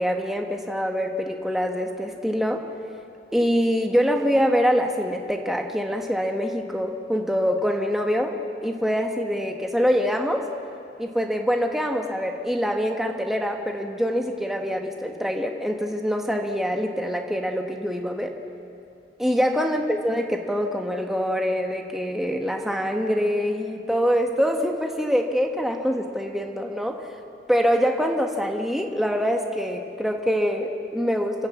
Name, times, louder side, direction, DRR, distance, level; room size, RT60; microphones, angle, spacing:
voice 1, 0.0-2.6 3.3-8.3 8.6-10.4 11.0-18.3 19.2-27.1 27.5-31.5, equal, ahead, 2 dB, 1.3 m, -24 dB
29.5 x 11.0 x 8.3 m, 2.5 s
head